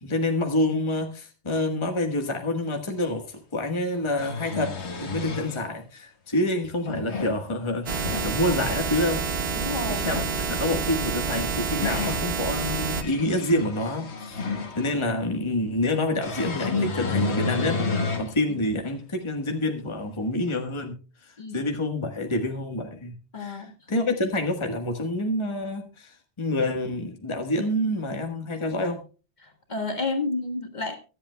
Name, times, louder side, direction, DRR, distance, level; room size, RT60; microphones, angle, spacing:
voice 1, 0.0-9.2 9.9-14.5 14.7-17.8 18.2-21.0 21.2-29.0, left 1 dB, 25° left, 4 dB, 1.4 m, -27 dB
sound 1, 3.0-3.1 3.9-5.6 6.6-7.4 7.8-8.3 9.9-10.4 11.3-12.3 12.8-15.0 16.2-18.3 18.9-19.0 20.5-20.6, left 3 dB, 80° left, 1.6 m, -30 dB
sound 2, 7.9-13.0, right 5 dB, 65° right, 1.3 m, -28 dB
voice 2, 9.5-10.1 18.2-18.6 21.4-21.6 23.3-23.7 29.4-31.0, left 3 dB, 40° left, 5 dB, 1.7 m, -31 dB
23.5 x 8.0 x 2.2 m, 0.34 s
omnidirectional pair, 1.1 m